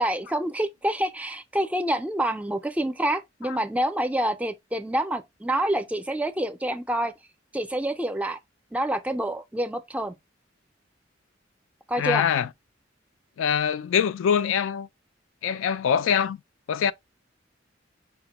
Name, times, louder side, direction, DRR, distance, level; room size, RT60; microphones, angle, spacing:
voice 1, 0.0-7.1 7.5-8.4 8.7-10.2 11.9-12.2, right 1 dB, 5° right, 0.4 m, -27 dB
voice 2, 12.0-12.5 13.4-14.9 15.4-16.4 16.7-16.9, left 7 dB, 85° left, 0.3 m, -23 dB
5.8 x 2.1 x 2.9 m
head